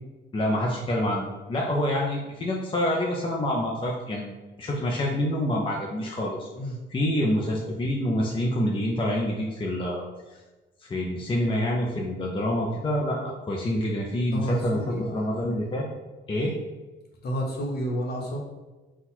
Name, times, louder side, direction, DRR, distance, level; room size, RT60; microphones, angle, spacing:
voice 1, 0.3-6.5 6.9-10.1 10.8-15.9 16.3-16.6, left 1 dB, 25° left, -2 dB, 0.6 m, -27 dB
voice 2, 14.3-15.0 17.2-18.4, equal, 55° left, 0 dB, 1.0 m, -30 dB
4.0 x 2.4 x 4.3 m, 1.2 s
cardioid pair, 90°, 20 cm